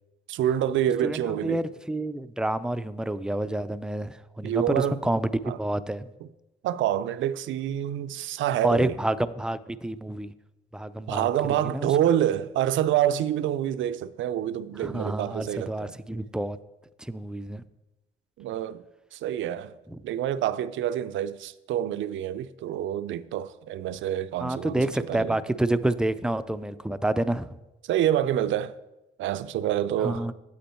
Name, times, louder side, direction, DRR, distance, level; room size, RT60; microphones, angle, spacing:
voice 1, 0.3-1.6 4.4-5.0 5.5-5.6 6.6-8.9 11.1-15.9 18.4-18.8 19.1-19.7 20.0-25.4 27.9-28.7 29.2-30.3, right 11 dB, 75° right, 0.5 m, -27 dB
voice 2, 1.0-6.1 8.6-10.3 10.7-11.9 14.8-16.6 17.0-17.6 19.9-20.0 24.4-27.5 30.0-30.3, right 1 dB, 5° right, 0.4 m, -28 dB
8.4 x 8.0 x 4.3 m
cardioid pair, 90°, 20 cm